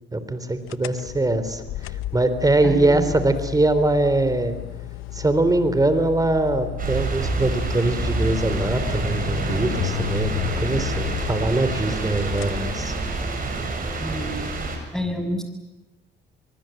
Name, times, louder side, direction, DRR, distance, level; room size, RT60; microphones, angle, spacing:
voice 1, 0.1-1.6 2.1-4.6 5.1-12.9, right 2 dB, 20° right, 11 dB, 3.4 m, -22 dB
sound 1, 0.7-13.5, left 13 dB, 90° left, 0.9 m, -33 dB
voice 2, 2.6-3.1 14.0-14.5 14.9-15.4, equal, 5° left, 5 dB, 6.6 m, -29 dB
sound 2, 6.8-14.8, right 4 dB, 45° right, 7.7 m, -28 dB
24.0 x 23.5 x 9.1 m, 1.0 s
cardioid pair, 90°, 20 cm